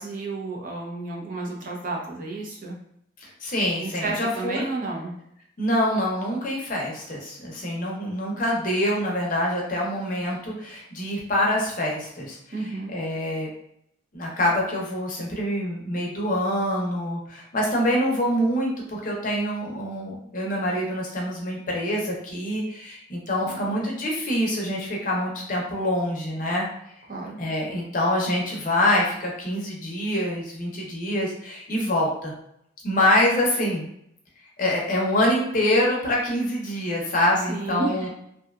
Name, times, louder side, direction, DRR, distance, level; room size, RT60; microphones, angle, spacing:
voice 1, 0.0-2.7 3.8-5.1 12.5-12.9 23.4-23.9 27.1-27.4 37.4-38.1, right 3 dB, 45° right, -1 dB, 0.5 m, -32 dB
voice 2, 3.2-4.6 5.6-12.4 12.9-13.5 14.1-26.7 27.4-32.3 32.8-33.9 34.6-38.1, left 1 dB, 45° left, -2 dB, 0.6 m, -25 dB
2.7 x 2.2 x 2.3 m, 0.74 s
head